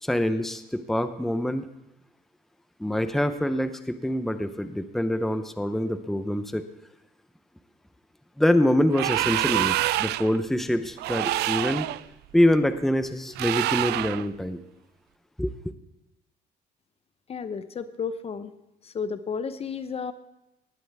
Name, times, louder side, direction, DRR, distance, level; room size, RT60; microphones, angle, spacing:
voice 1, 0.0-1.7 2.8-6.6 8.4-11.9 12.3-14.6 15.4-15.5, left 1 dB, ahead, 10 dB, 0.7 m, -25 dB
sound 1, 8.9-10.4 11.0-12.0 13.3-14.3, right 16 dB, 75° right, 0.4 m, -26 dB
voice 2, 17.3-18.5 18.8-20.1, left 6 dB, 35° left, 12 dB, 0.8 m, -32 dB
18.5 x 12.0 x 3.6 m, 0.91 s
cardioid pair, 110°, 17 cm